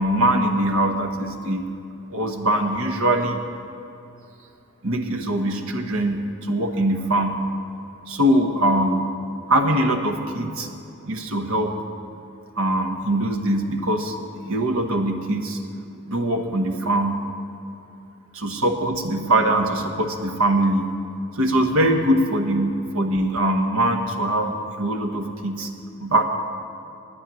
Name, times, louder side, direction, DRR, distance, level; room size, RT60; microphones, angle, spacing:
voice 1, 0.0-1.7 2.1-3.4 4.8-7.4 8.1-9.1 9.5-10.7 11.1-11.8 12.6-14.2 14.4-15.6 16.1-17.2 18.3-20.9 21.4-25.7 26.0-26.2, right 1 dB, 75° right, 5 dB, 1.2 m, -22 dB
10.0 x 8.8 x 8.9 m, 2.8 s
head